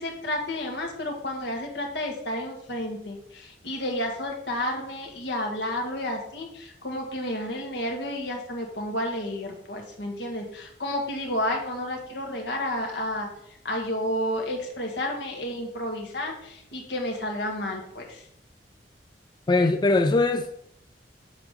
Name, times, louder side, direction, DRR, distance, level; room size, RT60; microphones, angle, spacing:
voice 1, 0.0-18.3, left 1 dB, 75° left, 1 dB, 1.7 m, -31 dB
voice 2, 19.5-20.5, left 2 dB, 25° left, 6 dB, 0.3 m, -21 dB
7.4 x 3.6 x 6.4 m, 0.76 s
head